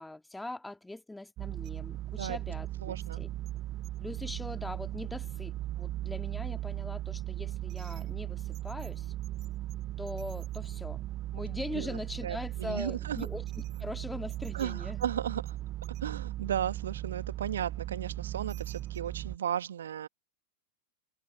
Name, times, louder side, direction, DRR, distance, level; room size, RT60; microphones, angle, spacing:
voice 1, 0.0-3.3 4.0-9.1 10.0-11.0 11.3-15.0, left 2 dB, 5° left, 2.5 m, -41 dB
sound 1, 1.4-19.4, right 14 dB, 35° right, 1.1 m, -37 dB
voice 2, 2.8-3.2 11.7-13.3 14.5-15.6 16.0-20.1, right 9 dB, 65° right, 1.8 m, -35 dB
figure-of-eight pair, 90°, 0 cm